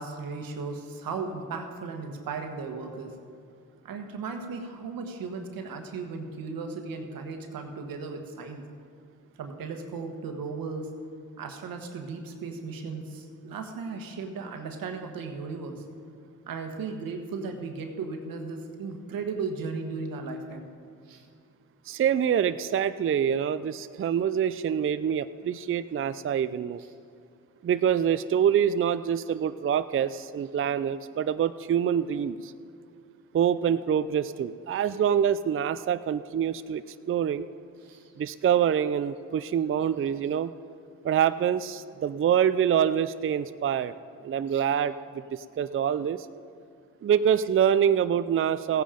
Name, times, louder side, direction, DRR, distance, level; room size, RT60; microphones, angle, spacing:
voice 1, 0.0-3.2 3.8-8.7 9.3-10.9 11.4-15.8 16.5-20.7 21.1-21.2 26.8-26.9 37.8-38.1 44.5-44.6 45.7-45.8, right 4 dB, 90° right, 5 dB, 1.3 m, -36 dB
voice 2, 21.9-26.8 27.6-32.5 33.3-37.5 38.2-40.5 41.0-43.9 44.2-44.9 45.3-46.3 47.0-48.8, right 8 dB, 40° right, 13 dB, 0.4 m, -25 dB
15.5 x 9.1 x 5.1 m, 2.4 s
cardioid pair, 60°, 34 cm